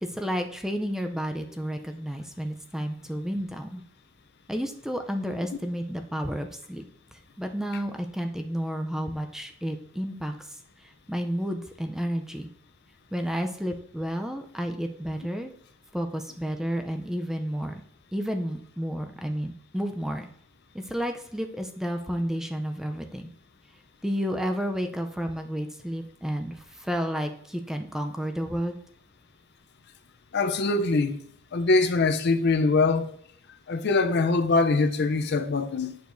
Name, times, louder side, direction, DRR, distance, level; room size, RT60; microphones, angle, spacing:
voice 1, 0.0-3.8 4.5-6.8 7.1-12.5 13.1-15.5 15.9-17.8 18.1-20.3 20.7-23.3 24.0-28.8, equal, ahead, 0.4 m, -31 dB
voice 2, 30.3-31.2 31.5-33.1 33.7-36.0, left 3 dB, 55° left, 0.5 m, -23 dB
9.3 x 6.5 x 2.6 m
head